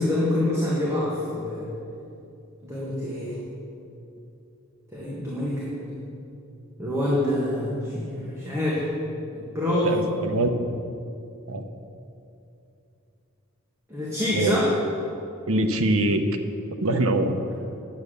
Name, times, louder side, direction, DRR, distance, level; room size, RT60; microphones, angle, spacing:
voice 1, 0.0-1.7 2.6-3.4 4.9-5.9 6.8-8.9 9.3-10.0 13.9-14.7 17.5-17.6, left 1 dB, 15° right, -7 dB, 1.8 m, -26 dB
voice 2, 9.8-10.6 11.5-11.6 14.3-14.6 15.5-16.2 16.8-17.5, right 1 dB, 75° right, 6 dB, 0.9 m, -23 dB
9.7 x 8.2 x 6.7 m, 2.7 s
head